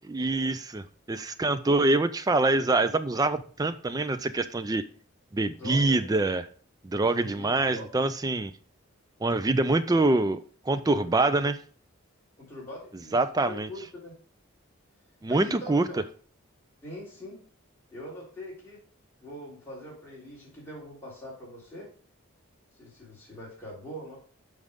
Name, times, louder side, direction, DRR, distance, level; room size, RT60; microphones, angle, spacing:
voice 1, 0.1-4.9 5.3-6.5 6.8-8.5 9.2-10.4 10.7-11.6 13.1-13.7 15.2-15.8, right 2 dB, 15° right, 12 dB, 0.3 m, -25 dB
voice 2, 5.6-6.0 7.2-7.9 11.2-11.4 12.4-13.2 13.5-14.2 15.3-16.0 16.8-17.4 17.9-18.8 19.2-21.9 22.8-24.2, equal, 10° left, -6 dB, 3.2 m, -43 dB
7.5 x 4.8 x 5.1 m, 0.43 s
head